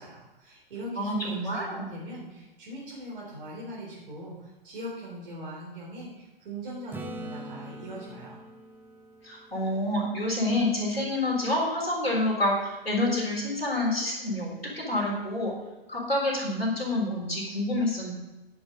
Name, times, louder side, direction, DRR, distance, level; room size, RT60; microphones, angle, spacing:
voice 1, 0.0-8.4, right 1 dB, 65° right, -5 dB, 3.7 m, -41 dB
voice 2, 1.0-1.9 9.2-15.5 15.9-18.1, left 1 dB, 90° left, -3 dB, 4.0 m, -28 dB
Acoustic guitar / Strum, 6.9-10.7 15.5-15.6, right 1 dB, 5° right, 1.0 m, -44 dB
10.5 x 10.5 x 3.9 m, 1.1 s
figure-of-eight pair, 100°, 29 cm